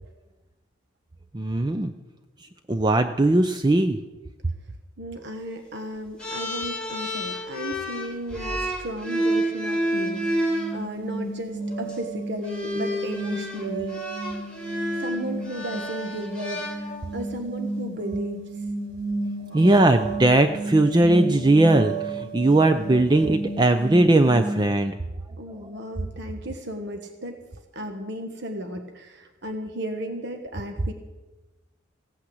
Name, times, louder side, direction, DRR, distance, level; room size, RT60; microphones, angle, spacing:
voice 1, 1.3-1.9 2.7-4.0 19.5-25.0, right 2 dB, 20° right, 8 dB, 0.5 m, -19 dB
voice 2, 5.0-14.0 15.0-18.6 25.4-27.4 27.7-30.9, right 1 dB, 55° right, 5 dB, 1.2 m, -34 dB
sound 1, 6.2-10.7 11.7-11.9 12.4-17.3, equal, 5° left, 4.2 m, -29 dB
sound 2, 10.0-24.6, right 2 dB, 75° right, 5.2 m, -32 dB
16.0 x 8.8 x 7.8 m, 1.1 s
head